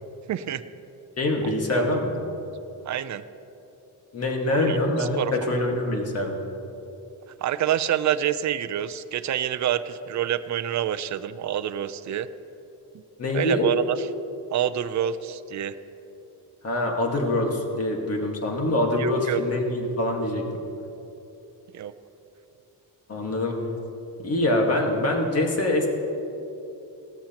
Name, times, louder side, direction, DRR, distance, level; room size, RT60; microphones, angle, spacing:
voice 1, 0.3-0.6 1.4-1.8 2.9-3.2 4.5-5.5 7.4-12.3 12.9-13.0 13.3-14.1 14.5-15.7 19.0-19.4 21.7-21.9, right 10 dB, 45° right, 11 dB, 0.5 m, -27 dB
voice 2, 1.2-2.1 4.1-6.4 13.2-13.7 16.6-20.4 23.1-23.6 24.2-25.9, left 1 dB, 35° left, 1 dB, 1.7 m, -24 dB
18.0 x 13.5 x 2.9 m, 2.9 s
cardioid pair, 155°, 41 cm